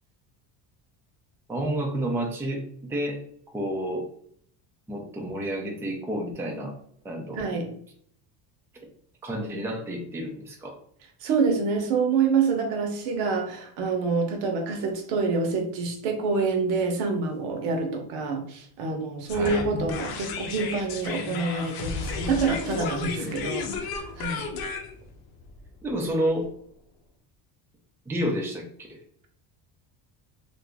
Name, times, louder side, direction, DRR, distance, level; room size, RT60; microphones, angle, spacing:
voice 1, 1.5-3.2 3.5-4.0 4.9-6.7 7.0-7.5 9.2-10.8 19.3-19.6 23.1-23.6 25.8-26.5 28.1-29.0, right 1 dB, 5° right, 1 dB, 0.4 m, -30 dB
voice 2, 7.3-7.7 11.2-24.5, right 4 dB, 80° right, 4 dB, 1.0 m, -27 dB
sound 1, 19.3-26.4, left 5 dB, 50° left, 0.7 m, -33 dB
2.7 x 2.5 x 3.4 m, 0.63 s
cardioid pair, 130°, 47 cm